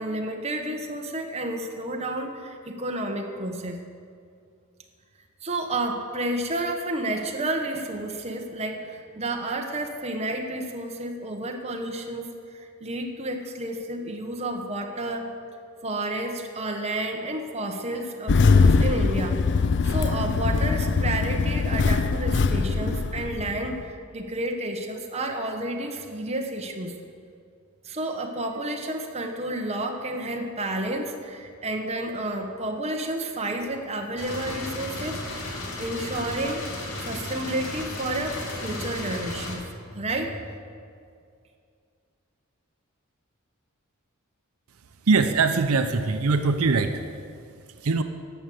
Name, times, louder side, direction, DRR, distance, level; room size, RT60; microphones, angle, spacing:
voice 1, 0.0-3.8 5.4-15.3 15.8-19.4 19.8-26.9 27.8-35.2 35.8-36.6 37.0-39.6 39.9-40.4, right 1 dB, 30° right, 3 dB, 1.1 m, -31 dB
Engine starting, 18.3-23.8, left 4 dB, 55° left, 0.5 m, -22 dB
sound 1, 34.2-39.6, left 2 dB, 75° left, 2.3 m, -34 dB
voice 2, 45.1-47.0 47.8-48.0, right 4 dB, 80° right, 8 dB, 0.6 m, -22 dB
11.5 x 7.1 x 7.8 m, 2.3 s
head